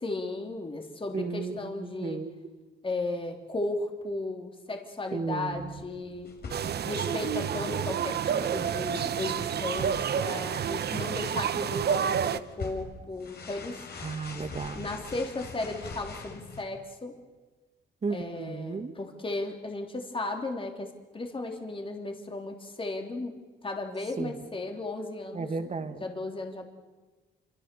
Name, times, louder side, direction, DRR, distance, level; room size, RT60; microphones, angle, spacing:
voice 1, 0.0-2.2 2.8-6.3 6.8-13.8 14.7-17.2 18.1-23.3 23.6-25.6 26.0-26.6, left 2 dB, 25° left, 3 dB, 3.3 m, -35 dB
voice 2, 1.1-2.3 5.1-5.6 14.0-14.8 18.0-18.9 24.2-24.3 25.3-25.9, right 4 dB, 35° right, 8 dB, 2.3 m, -34 dB
sound 1, 5.5-16.6, left 4 dB, 55° left, 4.8 m, -45 dB
sound 2, 6.5-12.4, right 8 dB, 55° right, 1.1 m, -29 dB
27.5 x 25.5 x 6.9 m, 1.3 s
cardioid pair, 90°, 20 cm